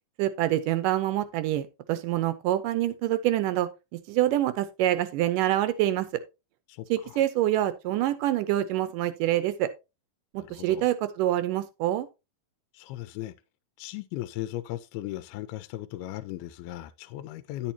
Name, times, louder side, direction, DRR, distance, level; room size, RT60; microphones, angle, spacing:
voice 1, 0.2-3.7 4.1-6.1 6.9-9.7 10.3-12.1, right 13 dB, 80° right, 2.0 m, -26 dB
voice 2, 6.7-7.2 10.4-10.9 12.7-13.3 13.8-17.7, left 15 dB, 90° left, 2.5 m, -37 dB
10.0 x 8.7 x 2.8 m
omnidirectional pair, 4.3 m